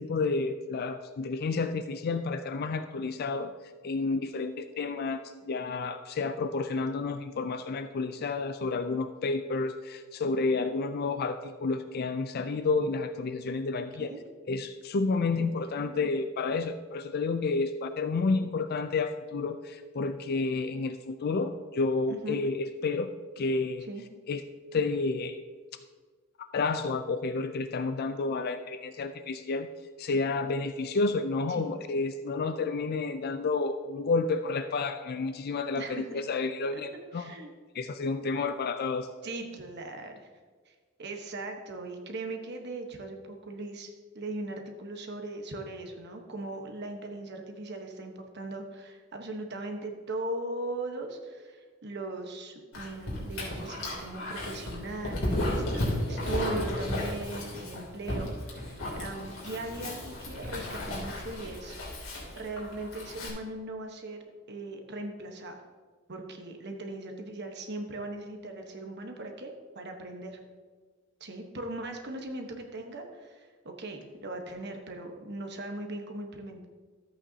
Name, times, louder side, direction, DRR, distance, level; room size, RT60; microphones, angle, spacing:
voice 1, 0.0-3.5 3.8-14.1 14.5-23.9 24.3-24.4 24.7-25.4 26.4-29.7 30.0-37.4 37.7-39.1, left 3 dB, 50° left, 10 dB, 0.4 m, -30 dB
voice 2, 15.6-16.1 22.1-22.4 23.9-24.0 31.5-31.7 35.8-36.3 36.7-36.8 37.1-37.5 39.2-40.1 40.7-61.8 62.3-64.2 64.5-65.6 66.1-70.4 71.2-76.6, right 2 dB, 55° right, 4 dB, 1.2 m, -39 dB
Dog, 52.7-63.3, left 1 dB, 75° left, 2.8 m, -34 dB
13.0 x 8.3 x 2.8 m, 1.5 s
head